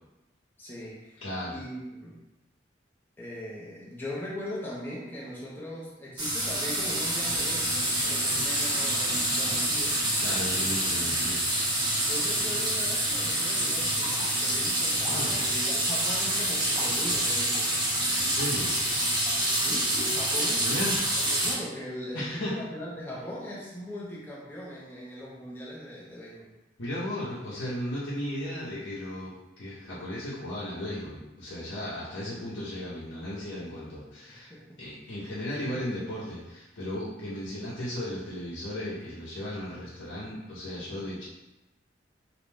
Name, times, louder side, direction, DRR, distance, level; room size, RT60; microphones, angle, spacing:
voice 1, 0.6-1.2 1.5-2.2 3.2-10.0 10.9-11.4 12.0-17.8 19.6-20.8 21.3-26.5 34.3-34.8 35.1-35.2 35.6-35.9, equal, 10° left, -7 dB, 0.5 m, -40 dB
voice 2, 1.2-1.6 10.2-11.4 15.0-15.3 18.1-18.7 20.6-21.0 22.1-22.6 26.8-34.5 34.8-41.2, left 1 dB, 80° left, -10 dB, 0.7 m, -35 dB
sound 1, 6.2-21.5, right 1 dB, 25° right, 0.7 m, -27 dB
2.5 x 2.2 x 3.2 m, 0.99 s
head